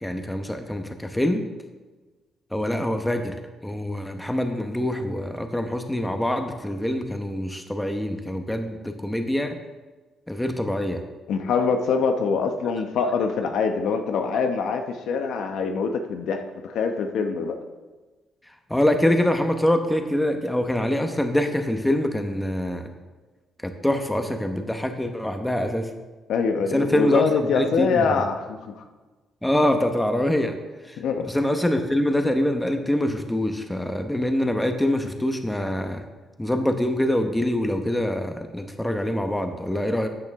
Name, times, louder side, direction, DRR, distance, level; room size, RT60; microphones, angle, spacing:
voice 1, 0.0-1.4 2.5-3.4 3.6-9.6 10.3-11.0 18.7-22.9 23.6-25.9 26.7-28.2 29.4-30.6 30.9-31.0 31.3-36.1 36.4-40.1, left 1 dB, 10° left, 5 dB, 1.2 m, -24 dB
voice 2, 11.3-17.6 26.3-28.8 31.0-31.3, left 5 dB, 80° left, 5 dB, 1.0 m, -24 dB
13.0 x 8.4 x 3.7 m, 1.3 s
cardioid pair, 90°, 0 cm